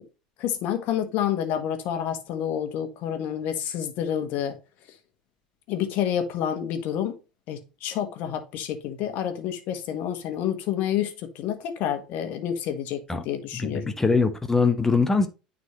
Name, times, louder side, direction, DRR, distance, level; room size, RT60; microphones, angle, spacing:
voice 1, 0.4-4.6 5.7-7.2 7.5-13.9, left 9 dB, 50° left, 1.4 m, -29 dB
voice 2, 13.5-15.3, left 4 dB, 10° left, 1.0 m, -22 dB
9.4 x 4.2 x 3.1 m
figure-of-eight pair, 70°, 4 cm